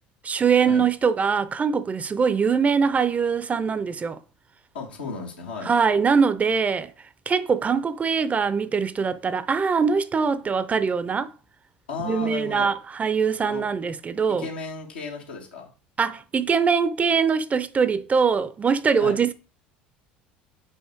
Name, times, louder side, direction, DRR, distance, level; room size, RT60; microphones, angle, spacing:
voice 1, 0.2-4.2 5.6-6.9 7.3-11.3 12.0-14.5 16.0-19.3, right 6 dB, 30° right, 0.6 m, -22 dB
voice 2, 4.7-5.7 11.9-12.7 13.5-13.6 14.4-15.7 19.0-19.2, left 4 dB, 85° left, 2.0 m, -34 dB
5.7 x 4.4 x 4.5 m
hypercardioid pair, 75°, 5 cm